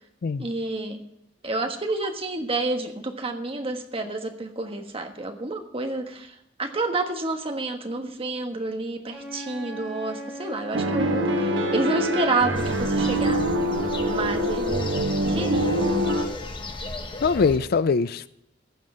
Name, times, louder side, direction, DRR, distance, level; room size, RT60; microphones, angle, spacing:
voice 1, 0.4-1.0 1.4-13.4 14.0-14.9 15.3-15.8, right 3 dB, 30° right, 1.3 m, -29 dB
Wind instrument woodwind instrument, 9.1-12.7, equal, 5° left, 2.2 m, -38 dB
sound 1, 10.7-16.3, right 1 dB, 85° right, 1.2 m, -24 dB
sound 2, 12.5-17.6, left 2 dB, 30° left, 1.3 m, -35 dB
voice 2, 17.2-18.3, left 5 dB, 55° left, 0.4 m, -22 dB
15.0 x 5.5 x 7.7 m
head